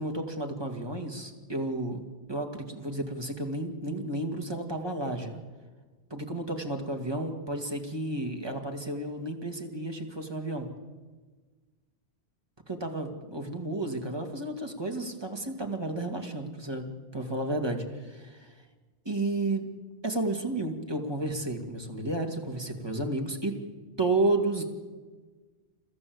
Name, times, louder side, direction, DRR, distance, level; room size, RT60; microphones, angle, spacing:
voice 1, 0.0-2.0 2.3-5.4 6.1-10.7 12.7-18.5 19.0-19.7 20.0-23.6 24.0-24.6, right 2 dB, 25° right, 3 dB, 2.4 m, -32 dB
29.5 x 15.0 x 7.9 m, 1.4 s
omnidirectional pair, 1.1 m